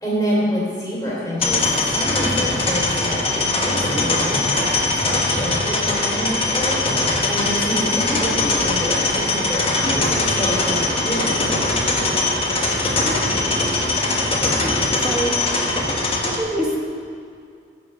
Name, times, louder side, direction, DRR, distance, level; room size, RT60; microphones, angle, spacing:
voice 1, 0.0-11.8, equal, 15° left, -7 dB, 2.8 m, -27 dB
sound 1, 1.4-16.4, left 2 dB, 30° left, 1.3 m, -21 dB
voice 2, 13.0-13.6 14.0-14.3 14.6-15.3 16.2-16.9, equal, 5° right, -2 dB, 1.3 m, -27 dB
11.5 x 4.9 x 7.6 m, 2.3 s
head